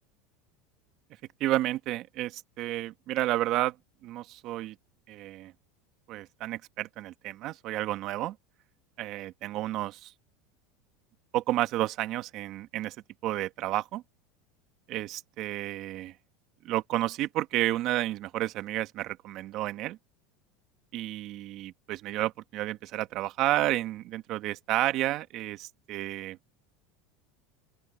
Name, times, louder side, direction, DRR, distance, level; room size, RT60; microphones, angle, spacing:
voice 1, 1.4-3.8 4.0-4.8 5.1-5.5 6.1-8.4 9.0-10.1 11.3-13.0 13.2-14.0 14.9-16.2 16.6-20.0 20.9-26.4, right 15 dB, 50° right, 1.8 m, -31 dB
open air
supercardioid pair, 135°, 0 cm